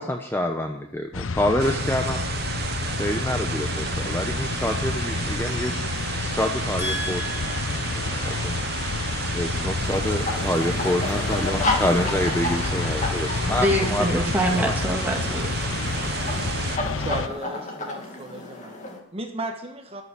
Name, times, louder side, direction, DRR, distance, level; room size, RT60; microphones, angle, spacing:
voice 1, 0.0-2.2 3.0-5.8 6.2-7.2 8.0-8.6 9.3-14.2 14.6-14.7, left 1 dB, 10° left, 4 dB, 0.8 m, -27 dB
sound 1, 1.1-17.3, left 4 dB, 70° left, 0.7 m, -29 dB
sound 2, 1.6-16.8, right 7 dB, 50° right, 0.7 m, -33 dB
voice 2, 6.8-8.0 13.6-15.5, equal, 10° right, 0 dB, 2.2 m, -26 dB
sound 3, 9.8-19.0, left 2 dB, 35° left, 2.4 m, -32 dB
voice 3, 17.0-18.8 19.1-20.0, right 2 dB, 30° right, 4 dB, 1.3 m, -35 dB
13.5 x 7.1 x 9.9 m, 0.75 s
head